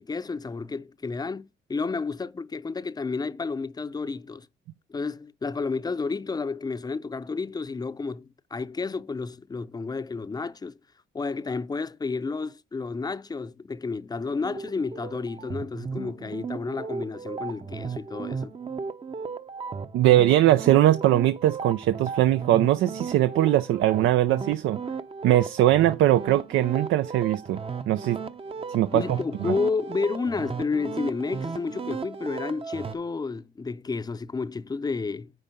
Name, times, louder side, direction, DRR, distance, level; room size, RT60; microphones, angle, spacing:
voice 1, 0.0-4.5 4.9-10.8 11.1-18.5 28.9-35.3, left 4 dB, 20° left, 0.6 m, -31 dB
sound 1, 14.4-33.0, right 5 dB, 30° right, 0.7 m, -35 dB
voice 2, 19.9-24.8 25.2-27.6 27.9-28.2 28.7-29.0 29.5-29.6, right 13 dB, 85° right, 0.5 m, -21 dB
9.9 x 3.6 x 5.2 m
cardioid pair, 90°, 20 cm